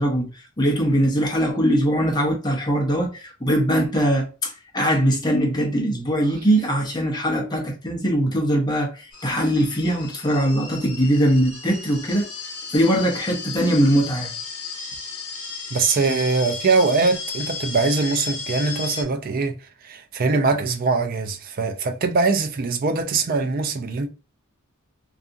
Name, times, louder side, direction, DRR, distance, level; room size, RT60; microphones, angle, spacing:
voice 1, 0.0-12.3 12.7-14.3, equal, 20° left, 0.7 m, -21 dB
sound 1, 9.1-19.0, left 4 dB, 85° left, 0.9 m, -34 dB
voice 2, 15.7-24.1, right 4 dB, 40° right, 0.4 m, -22 dB
2.7 x 2.4 x 2.5 m
head